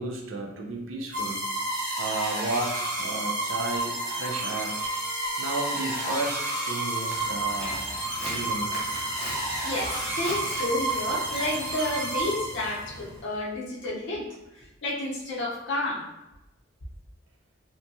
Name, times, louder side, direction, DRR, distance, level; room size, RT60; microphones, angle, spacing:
voice 1, 0.0-1.4 2.0-4.8 5.4-7.8 8.3-8.9, right 2 dB, 80° right, 1 dB, 0.5 m, -33 dB
sound 1, 1.1-13.0, right 1 dB, 45° right, 1.1 m, -30 dB
Trumpet, 3.3-7.7, equal, 45° left, 0.3 m, -46 dB
Walk footsteps, 7.1-13.2, equal, 5° left, 0.6 m, -41 dB
voice 2, 9.6-14.3 14.6-16.0, left 1 dB, 60° left, -4 dB, 0.7 m, -31 dB
3.0 x 2.2 x 2.6 m, 0.93 s
head